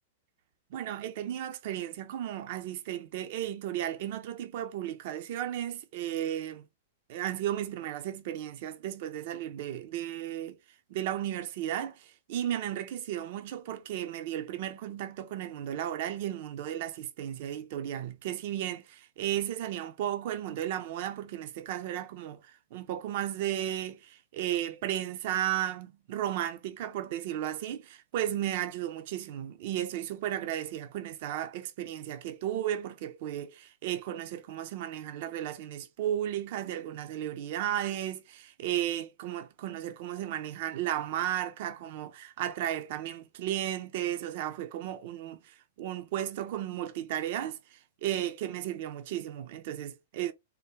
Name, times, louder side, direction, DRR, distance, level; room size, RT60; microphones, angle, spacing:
voice 1, 0.7-6.7 7.1-10.6 10.9-50.3, right 11 dB, 55° right, 0.5 m, -34 dB
3.5 x 2.2 x 2.9 m
hypercardioid pair, 110°, 0 cm